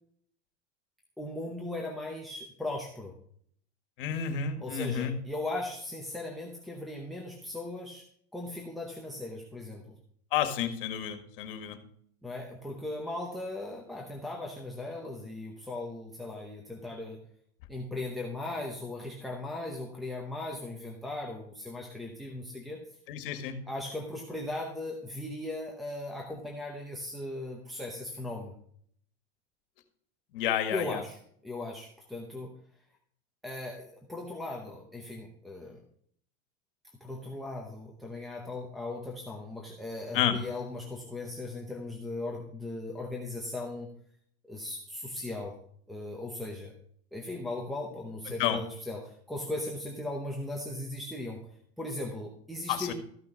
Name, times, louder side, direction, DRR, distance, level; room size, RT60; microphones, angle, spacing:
voice 1, 1.2-3.1 4.6-8.0 8.3-9.9 12.2-17.2 17.7-22.8 23.7-28.5 30.7-32.5 33.4-35.8 37.0-43.9 44.4-45.6 45.9-46.7 47.1-51.4 51.8-52.9, left 2 dB, ahead, -2 dB, 0.8 m, -38 dB
voice 2, 4.0-5.1 10.3-11.8 23.1-23.5 30.3-31.0 40.1-40.4 48.4-48.6 52.7-52.9, left 9 dB, 55° left, 8 dB, 1.8 m, -30 dB
14.0 x 6.2 x 5.3 m, 0.62 s
supercardioid pair, 175°, 32 cm